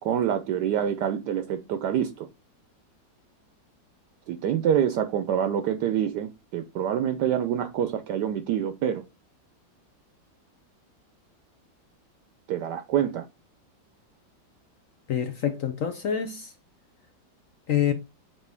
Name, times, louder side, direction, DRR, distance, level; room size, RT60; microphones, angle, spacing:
voice 1, 0.0-2.3 4.3-9.0 12.5-13.3, right 9 dB, 70° right, 1.1 m, -26 dB
voice 2, 15.1-16.5 17.7-17.9, left 9 dB, 65° left, 0.9 m, -26 dB
7.3 x 3.8 x 3.4 m
omnidirectional pair, 2.0 m